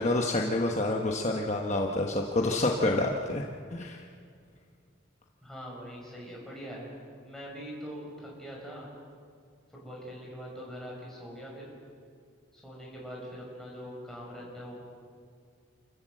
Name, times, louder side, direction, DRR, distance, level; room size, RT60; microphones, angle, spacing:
voice 1, 0.0-3.5 3.7-4.0, left 2 dB, 35° left, 0 dB, 1.1 m, -28 dB
voice 2, 5.4-6.9 7.2-8.9 9.7-11.6 12.5-14.7, equal, ahead, -4 dB, 5.9 m, -43 dB
28.5 x 14.0 x 7.7 m, 2.2 s
head